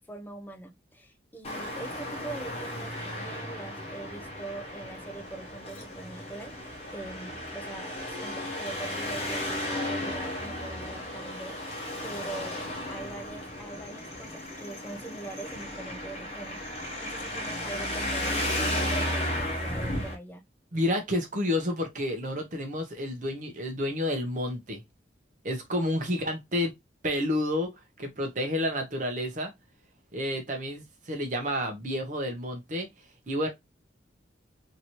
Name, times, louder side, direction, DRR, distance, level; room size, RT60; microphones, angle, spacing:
voice 1, 0.1-16.6 17.0-20.4, right 2 dB, 10° left, 0.4 m, -42 dB
Traffic noise roadway noise, 1.4-20.1, left 1 dB, 35° left, 0.8 m, -34 dB
voice 2, 20.7-24.8 25.4-26.7 27.0-29.5 30.1-32.9 33.3-33.5, left 1 dB, 40° right, 0.8 m, -30 dB
3.0 x 2.7 x 2.9 m
head